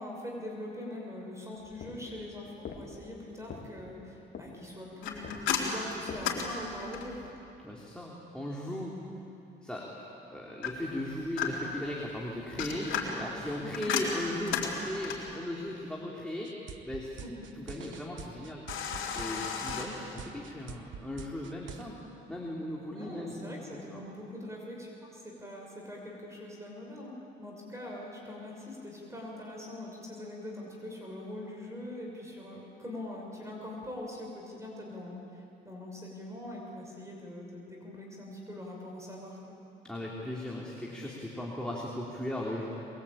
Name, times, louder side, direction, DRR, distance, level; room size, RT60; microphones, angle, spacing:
voice 1, 0.0-7.3 13.6-13.8 17.2-17.4 22.9-39.4, left 1 dB, 15° right, -1 dB, 6.1 m, -43 dB
sound 1, 1.6-6.7, left 5 dB, 55° left, 3.1 m, -46 dB
sound 2, 5.0-7.3 10.6-11.9 12.4-15.4 18.7-19.9, left 6 dB, 80° left, 4.1 m, -34 dB
voice 2, 7.6-9.0 9.6-9.9 10.3-16.5 16.8-17.2 17.6-18.7 19.1-24.1 39.8-42.7, left 1 dB, 5° left, -4 dB, 3.7 m, -37 dB
sound 3, 16.4-21.8, right 7 dB, 70° right, 1.0 m, -45 dB
23.5 x 22.0 x 9.0 m, 2.8 s
cardioid pair, 90°, 20 cm